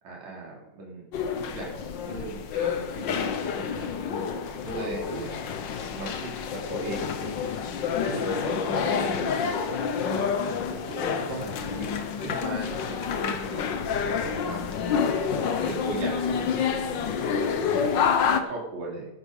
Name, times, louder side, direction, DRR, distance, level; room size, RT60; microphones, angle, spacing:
voice 1, 0.0-1.1 1.3-3.9 4.5-5.3 5.9-7.4 8.0-9.3 9.9-10.4 10.7-11.9 12.2-13.8 14.3-14.6 15.0-19.1, right 3 dB, 60° right, -3 dB, 4.6 m, -38 dB
sound 1, 1.1-18.4, left 6 dB, 90° left, 1.0 m, -28 dB
13.5 x 11.5 x 5.4 m, 0.92 s
omnidirectional pair, 3.5 m